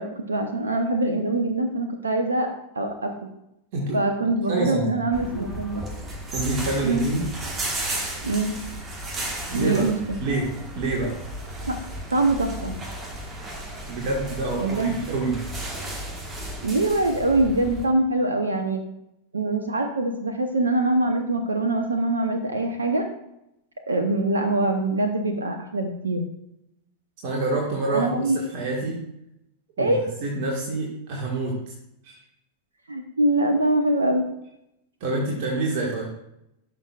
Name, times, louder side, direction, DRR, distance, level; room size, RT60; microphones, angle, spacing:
voice 1, 0.0-3.3 3.9-5.8 6.8-7.0 8.2-8.5 9.5-10.0 11.7-11.8 12.1-12.8 14.6-15.0 16.6-18.8 19.3-23.1 23.9-26.3 27.9-28.4 29.8-30.0 32.9-34.2, right 2 dB, 75° right, 6 dB, 0.8 m, -24 dB
voice 2, 4.5-5.0 6.3-7.3 9.5-9.8 10.2-11.2 13.9-15.4 27.2-29.0 29.8-31.7 32.0-32.2 35.0-36.1, right 2 dB, 50° right, -1 dB, 1.6 m, -27 dB
sound 1, 5.1-17.9, right 1 dB, 20° right, 1.5 m, -34 dB
13.5 x 6.0 x 2.4 m, 0.83 s
figure-of-eight pair, 90°, 0 cm